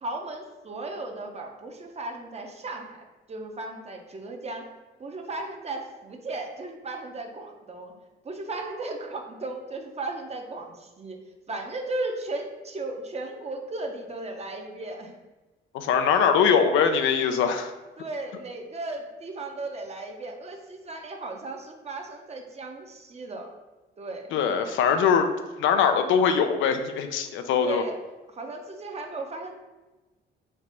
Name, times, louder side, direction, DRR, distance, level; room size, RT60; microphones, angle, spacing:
voice 1, 0.0-4.7 5.0-7.9 8.2-15.2 18.0-23.5 24.0-24.3 27.6-28.0 28.3-29.5, right 2 dB, 30° right, 3 dB, 0.7 m, -36 dB
voice 2, 15.7-17.7 24.3-25.3 25.6-27.8, left 6 dB, 80° left, 7 dB, 0.4 m, -22 dB
3.3 x 2.5 x 4.2 m, 1.1 s
cardioid pair, 90°, 20 cm